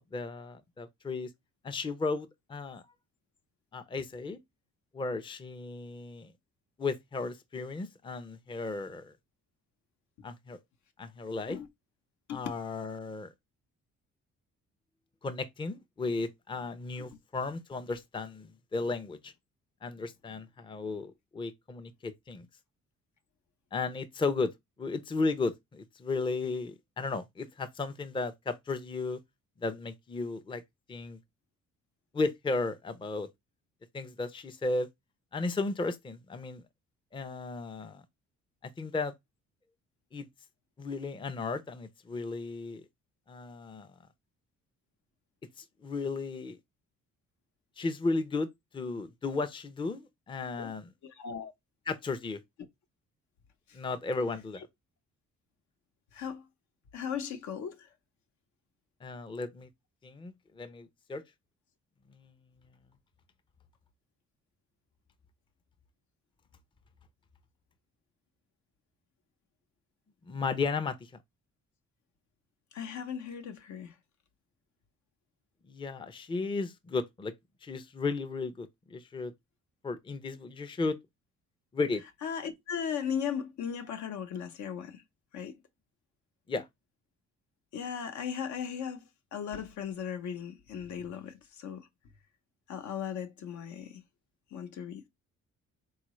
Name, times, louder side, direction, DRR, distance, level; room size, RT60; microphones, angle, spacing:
voice 1, 0.0-1.3 1.6-2.8 3.7-4.4 4.9-6.3 6.8-9.1 10.2-10.6 11.0-11.6 12.3-13.3 15.2-19.3 19.8-22.5 23.7-24.5 24.8-29.2 29.6-30.6 30.9-31.2 32.1-33.3 33.9-34.9 35.3-36.6 37.1-38.0 38.6-39.1 40.1-40.3 40.8-42.8 43.3-43.9 45.6-46.6 47.8-48.5 48.7-50.9 51.9-52.4 53.7-54.7 59.0-59.7 60.0-61.2 62.1-62.3 70.2-71.1 75.7-77.3 77.6-79.3 79.8-81.0 81.7-82.0 86.5-86.7, left 3 dB, 15° left, 0.5 m, -34 dB
voice 2, 51.0-51.5 53.7-53.8 54.6-54.7 56.1-56.5 56.9-57.9 72.7-73.9 82.2-85.0 85.3-85.6 87.7-89.0 89.3-91.9 92.7-94.0 94.5-95.0, left 8 dB, 70° left, 0.8 m, -37 dB
3.8 x 2.3 x 3.0 m
cardioid pair, 90°, 30 cm